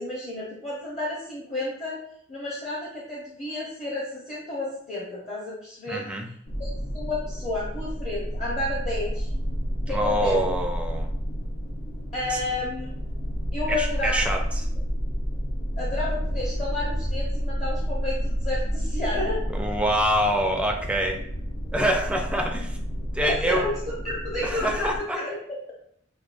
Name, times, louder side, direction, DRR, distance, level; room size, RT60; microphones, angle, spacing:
voice 1, 0.0-2.0 2.3-6.0 6.6-9.3 9.9-10.4 12.1-13.0 13.5-14.2 15.8-19.4 23.2-23.8 24.0-25.4, left 2 dB, 35° left, -6 dB, 0.9 m, -31 dB
voice 2, 5.9-6.3 9.9-11.1 12.3-12.4 13.7-14.4 19.5-21.2 21.7-22.8 23.1-23.7 24.4-25.2, equal, 5° right, 3 dB, 0.4 m, -25 dB
sound 1, 6.5-25.0, equal, 75° left, 0.8 m, -30 dB
5.9 x 2.3 x 2.5 m, 0.69 s
head